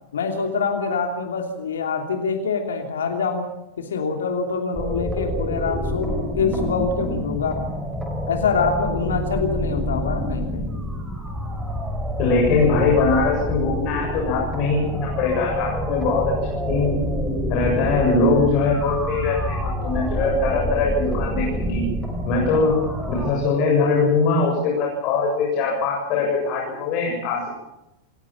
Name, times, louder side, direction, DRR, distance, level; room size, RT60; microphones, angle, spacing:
voice 1, 0.1-3.5 3.8-7.6 8.3-10.7, left 5 dB, 65° left, 4 dB, 2.9 m, -25 dB
sound 1, 4.7-23.3, equal, 10° right, 4.7 m, -27 dB
voice 2, 12.2-16.2 16.7-17.0 17.5-21.8 22.2-27.5, left 4 dB, 40° left, -2 dB, 7.2 m, -21 dB
28.0 x 16.0 x 7.5 m, 0.91 s
figure-of-eight pair, 90°, 0 cm